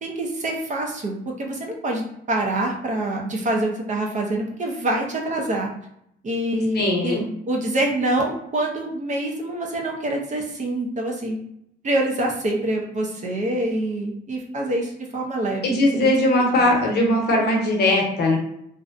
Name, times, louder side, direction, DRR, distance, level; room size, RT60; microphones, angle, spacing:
voice 1, 0.0-5.7 6.2-7.2 7.5-11.4 11.8-16.1 16.6-16.7, right 1 dB, 40° right, 0 dB, 0.6 m, -26 dB
voice 2, 6.7-7.2 15.6-18.4, left 1 dB, 55° left, -1 dB, 0.8 m, -19 dB
2.5 x 2.1 x 2.5 m, 0.74 s
cardioid pair, 90°, 20 cm